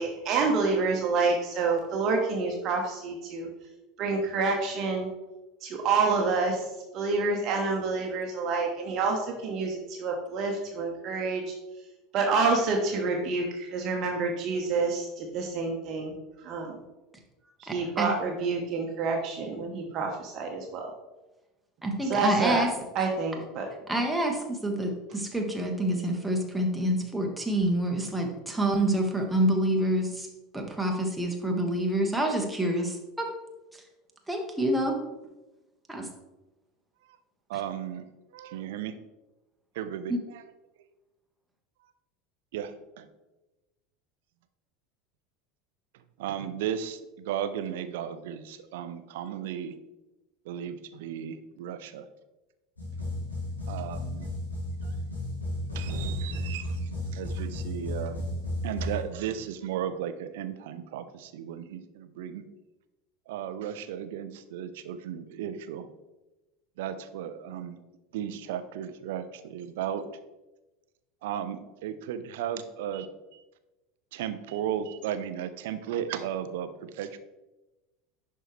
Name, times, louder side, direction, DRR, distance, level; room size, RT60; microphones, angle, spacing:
voice 1, 0.0-3.5 4.0-5.1 5.6-11.4 12.1-16.1 16.4-16.8 17.6-20.9 22.0-22.6 22.9-23.7, right 4 dB, 40° right, 1 dB, 1.0 m, -28 dB
voice 2, 17.7-18.1 21.8-22.7 23.9-30.3 30.5-33.3 34.3-35.0 35.9-36.1 40.1-40.2, right 1 dB, 5° right, 1 dB, 1.3 m, -27 dB
voice 3, 37.5-38.1 38.3-39.0 39.8-40.4 42.5-43.1 46.2-47.0 47.2-49.7 50.5-52.0 53.7-54.3 54.8-54.9 55.7-56.8 57.1-58.2 58.6-62.4 63.3-65.9 66.8-67.8 68.1-70.0 71.2-73.1 73.3-73.4 74.1-77.2, right 9 dB, 60° right, 11 dB, 0.5 m, -35 dB
sound 1, 52.8-59.1, left 1 dB, 80° left, 2.1 m, -33 dB
11.0 x 4.5 x 3.3 m, 1.1 s
figure-of-eight pair, 75°, 0 cm